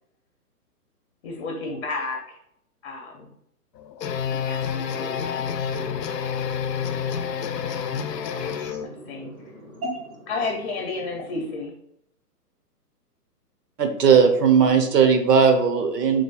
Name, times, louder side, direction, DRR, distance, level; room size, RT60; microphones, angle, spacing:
voice 1, 1.2-2.4 2.8-3.3 4.3-5.8 8.3-8.5 8.8-9.3 10.3-11.7, left 3 dB, 45° left, 2 dB, 0.7 m, -32 dB
sound 1, 3.7-8.9, left 7 dB, 85° left, 0.6 m, -28 dB
voice 2, 6.9-10.3, right 1 dB, 20° right, -2 dB, 0.6 m, -39 dB
voice 3, 13.8-16.2, right 6 dB, 80° right, 6 dB, 0.9 m, -17 dB
3.1 x 2.3 x 3.9 m, 0.74 s
hypercardioid pair, 140°, 48 cm